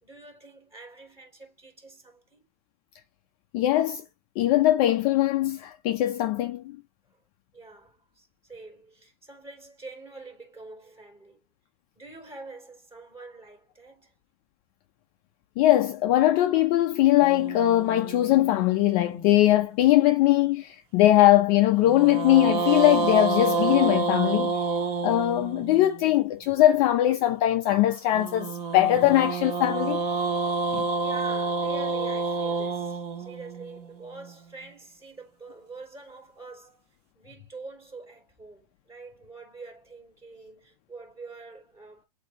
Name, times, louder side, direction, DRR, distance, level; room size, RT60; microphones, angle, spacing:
voice 1, 0.0-2.4 7.1-7.2 7.5-11.4 11.9-14.2 30.6-36.9 37.2-42.1, right 3 dB, 15° right, 3.8 m, -45 dB
voice 2, 3.5-4.0 4.4-6.8 15.6-24.6 25.0-30.0 30.7-30.8, left 14 dB, 25° left, 0.4 m, -21 dB
sound 1, 17.2-19.6 21.8-26.0 28.1-34.3, right 4 dB, 30° right, 1.5 m, -29 dB
7.8 x 2.7 x 4.4 m
hypercardioid pair, 150°, 19 cm